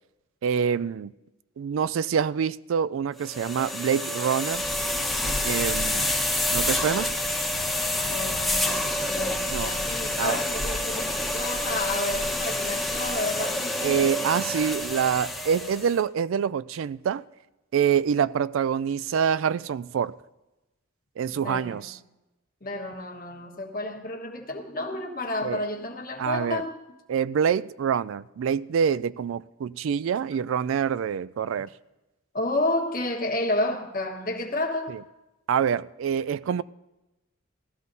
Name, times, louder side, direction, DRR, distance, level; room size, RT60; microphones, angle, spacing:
voice 1, 0.4-1.1 1.6-4.6 5.4-6.1 6.5-7.1 9.5-9.7 10.2-10.4 13.8-17.2 17.7-20.1 21.2-22.0 25.4-25.6 26.2-26.6 27.1-31.7 34.9-35.0 35.5-36.6, right 7 dB, 80° right, 0.3 m, -26 dB
sound 1, 3.2-15.9, left 1 dB, ahead, 1.1 m, -28 dB
Train, 4.5-11.4, equal, 85° left, 1.2 m, -39 dB
voice 2, 8.0-14.3 21.3-21.9 22.6-26.8 32.3-34.9, left 2 dB, 45° left, 1.4 m, -31 dB
18.0 x 13.5 x 2.7 m
head